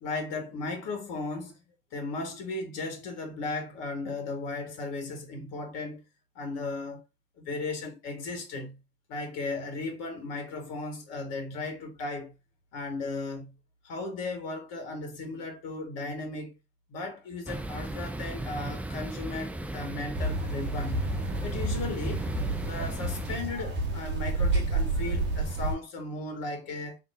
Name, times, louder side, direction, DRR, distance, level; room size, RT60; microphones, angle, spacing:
voice 1, 0.0-1.6 1.9-6.0 6.3-7.0 7.4-8.8 9.1-12.3 12.7-13.5 13.8-16.5 16.9-21.1 21.4-22.3 22.6-27.0, left 3 dB, 50° left, 1.5 m, -36 dB
sound 1, 17.5-23.4, right 1 dB, 5° right, 0.4 m, -36 dB
sound 2, 20.1-25.7, right 2 dB, 35° right, 1.1 m, -30 dB
3.6 x 2.9 x 2.6 m
figure-of-eight pair, 70°, 32 cm